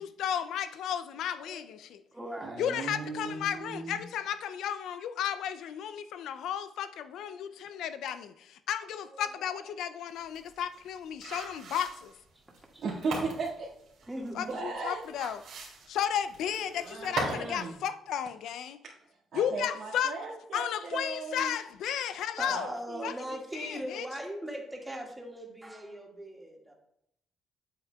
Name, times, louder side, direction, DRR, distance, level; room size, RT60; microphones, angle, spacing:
voice 1, 0.0-2.0 2.6-12.1 14.4-15.4 15.9-18.8 19.3-20.2 20.5-22.7 23.0-24.1, left 9 dB, 80° left, 0.4 m, -34 dB
voice 2, 1.4-2.6 7.2-7.5 9.0-9.7 12.4-12.5 12.7-12.8 14.1-14.7 16.5-17.1 22.4-26.7, equal, 10° right, 1.8 m, -41 dB
voice 3, 2.4-4.0 12.8-13.7 14.0-14.1 14.4-15.0 16.8-17.8 18.8-18.9 19.3-21.6 22.5-23.2, right 4 dB, 65° right, 1.8 m, -37 dB
sound 1, 10.1-17.5 17.8-17.9, right 3 dB, 85° right, 2.7 m, -39 dB
8.3 x 8.2 x 2.3 m
cardioid pair, 90°, 0 cm